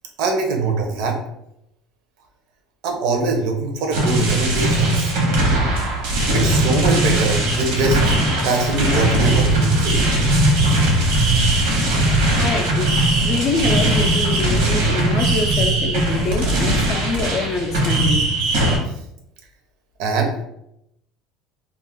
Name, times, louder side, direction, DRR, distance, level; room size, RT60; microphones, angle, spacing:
voice 1, 0.2-1.2 2.8-5.1 6.3-8.2 8.4-10.0 18.9-19.0 20.0-20.4, right 3 dB, 70° right, 3 dB, 0.6 m, -22 dB
sound 1, 3.9-18.8, right 1 dB, 85° right, 1.0 m, -19 dB
voice 2, 12.4-18.3, left 3 dB, 35° left, 6 dB, 0.3 m, -25 dB
2.4 x 2.1 x 3.4 m, 0.80 s
cardioid pair, 155°, 0 cm